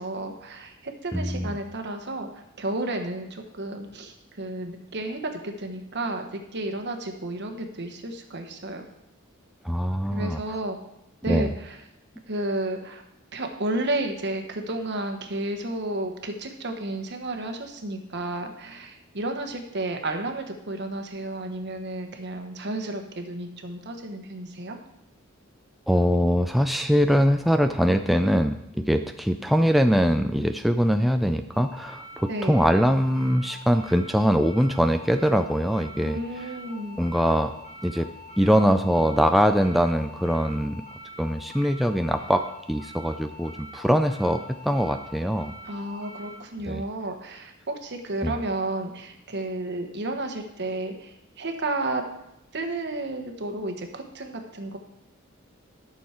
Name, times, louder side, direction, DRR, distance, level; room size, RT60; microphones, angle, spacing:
voice 1, 0.0-8.9 10.1-10.8 11.2-11.8 12.3-13.0 13.3-24.8 32.3-32.6 36.0-37.0 45.6-52.0 52.5-54.8, right 2 dB, 55° right, 5 dB, 1.3 m, -32 dB
voice 2, 1.1-1.6 9.6-10.4 11.3-11.5 25.9-36.2 37.0-37.5 37.8-38.1 38.4-40.8 41.2-45.5 46.7-46.8 48.2-48.4, equal, ahead, 6 dB, 0.3 m, -22 dB
sound 1, 31.5-46.3, left 1 dB, 40° left, 4.3 m, -44 dB
12.5 x 6.4 x 4.4 m, 0.83 s
head